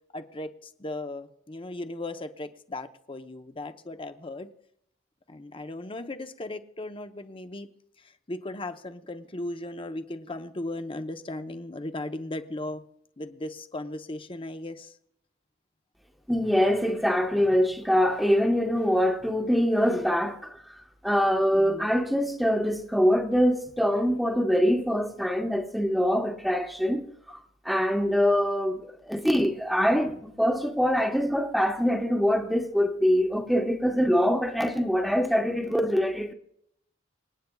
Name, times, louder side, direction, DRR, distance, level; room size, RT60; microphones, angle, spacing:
voice 1, 0.1-0.5 0.8-4.5 5.3-7.7 8.3-12.8 13.2-14.9 21.5-21.9, left 2 dB, 25° left, 0.8 m, -37 dB
voice 2, 16.3-20.4 21.0-27.0 27.6-36.3, equal, ahead, 1.1 m, -24 dB
26.5 x 9.4 x 2.3 m
head